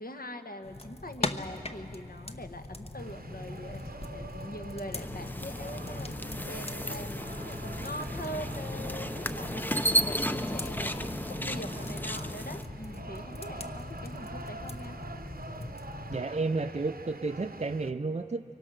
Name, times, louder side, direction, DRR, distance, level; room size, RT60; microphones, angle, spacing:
voice 1, 0.0-15.0, left 1 dB, 65° left, 5 dB, 1.4 m, -43 dB
sound 1, 0.6-16.2, left 2 dB, 40° left, 0.9 m, -40 dB
sound 2, 3.0-17.9, right 3 dB, 65° right, 0.9 m, -46 dB
sound 3, 4.9-12.6, equal, 10° left, 0.6 m, -34 dB
voice 2, 16.1-18.4, right 3 dB, 40° right, 7 dB, 0.5 m, -31 dB
24.0 x 23.0 x 6.3 m, 2.8 s
wide cardioid pair, 40°, 17 cm